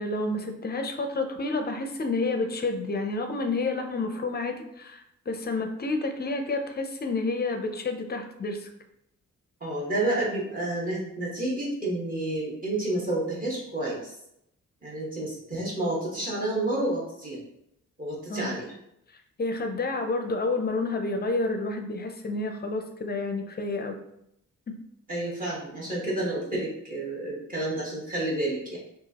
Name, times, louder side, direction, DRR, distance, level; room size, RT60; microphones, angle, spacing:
voice 1, 0.0-8.7 18.3-18.6 19.4-24.0 24.7-24.8, left 3 dB, 30° left, 5 dB, 0.5 m, -29 dB
voice 2, 9.6-14.1 14.8-17.4 18.0-18.7 25.1-28.8, right 1 dB, 25° right, -6 dB, 1.2 m, -30 dB
5.7 x 2.4 x 2.8 m, 0.78 s
wide cardioid pair, 145°, 32 cm